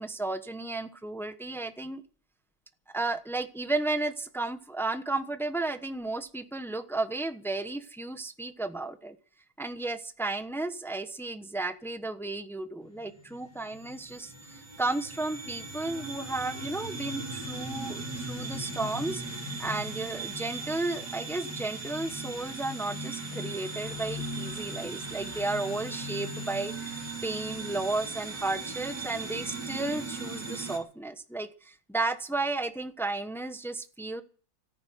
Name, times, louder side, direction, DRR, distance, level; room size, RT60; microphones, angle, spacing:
voice 1, 0.0-2.0 2.9-9.2 9.6-34.2, right 2 dB, 5° left, 9 dB, 0.5 m, -33 dB
sound 1, 12.8-30.8, right 2 dB, 55° right, 4.4 m, -38 dB
14.0 x 9.5 x 9.4 m, 0.41 s
omnidirectional pair, 2.2 m